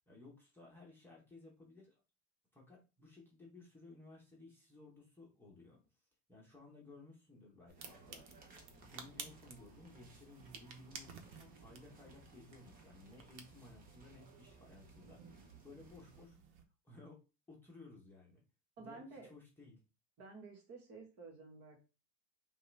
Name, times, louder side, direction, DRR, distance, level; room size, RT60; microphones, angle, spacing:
voice 1, 0.1-1.9 2.5-5.8 6.3-8.3 8.7-16.4 16.8-17.2 17.5-18.4 18.8-19.8, left 2 dB, 5° left, -4 dB, 0.9 m, -58 dB
sound 1, 7.7-16.3, right 3 dB, 25° right, 0.8 m, -61 dB
sound 2, 7.7-16.6, right 6 dB, 90° right, 1.0 m, -55 dB
voice 2, 18.8-19.3 20.2-21.8, right 3 dB, 45° right, 2 dB, 1.6 m, -52 dB
5.5 x 2.5 x 3.3 m, 0.31 s
supercardioid pair, 155°, 34 cm